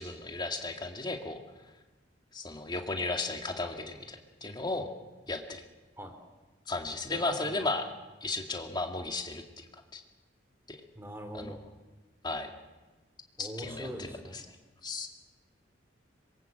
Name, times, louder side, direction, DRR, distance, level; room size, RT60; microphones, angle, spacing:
voice 1, 0.0-1.4 2.3-4.9 5.3-5.6 6.7-7.8 8.2-9.7 9.9-10.0 10.7-10.8 11.3-11.6 12.2-12.5 13.4-13.9 14.3-14.4 14.8-15.1, left 2 dB, 25° left, 4 dB, 2.2 m, -34 dB
voice 2, 7.1-7.8 11.0-11.6 13.4-14.4, equal, 15° right, 5 dB, 3.6 m, -42 dB
25.5 x 23.0 x 7.9 m, 1.2 s
head